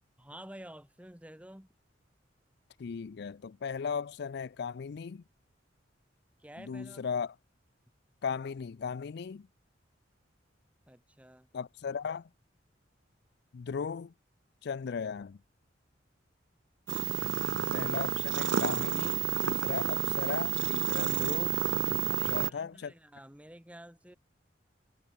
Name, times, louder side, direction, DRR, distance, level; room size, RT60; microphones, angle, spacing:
voice 1, 0.2-1.7 6.4-7.0 10.9-11.5 22.1-24.2, right 1 dB, 5° right, 2.7 m, -50 dB
voice 2, 2.8-5.2 6.6-7.4 8.2-9.5 11.5-12.3 13.5-14.1 14.6-15.4 17.7-21.6 21.9-22.9, left 6 dB, 60° left, 0.4 m, -37 dB
sound 1, 16.9-22.5, right 10 dB, 70° right, 0.5 m, -30 dB
head